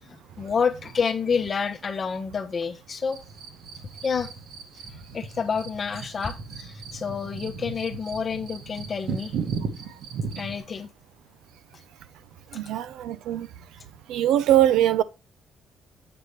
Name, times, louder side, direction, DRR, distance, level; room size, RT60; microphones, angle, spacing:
voice 1, 0.1-3.2 4.0-4.3 5.1-9.3 10.4-10.9, left 6 dB, 30° left, 0.8 m, -28 dB
sound 1, 3.1-10.6, right 6 dB, 60° right, 1.5 m, -36 dB
voice 2, 12.5-13.5 14.1-15.0, right 12 dB, 85° right, 0.6 m, -21 dB
7.8 x 5.7 x 3.2 m
cardioid pair, 175°, 0 cm